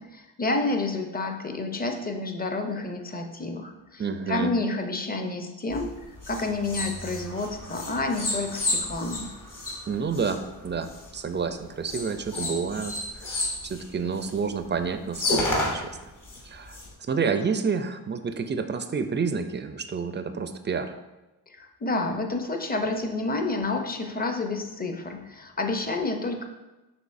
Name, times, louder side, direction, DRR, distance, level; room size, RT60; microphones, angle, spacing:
voice 1, 0.0-4.0 4.3-6.0 6.3-9.3 21.6-26.4, left 2 dB, 20° left, 5 dB, 0.6 m, -29 dB
voice 2, 4.0-4.5 9.9-15.8 16.4-16.8 17.1-21.0, right 5 dB, 30° right, 8 dB, 0.4 m, -29 dB
sound 1, 5.7-11.2 11.9-14.5 14.8-14.9 15.1-16.9, left 2 dB, 50° left, 1.2 m, -31 dB
6.1 x 3.1 x 2.6 m, 1.0 s
cardioid pair, 60°, 41 cm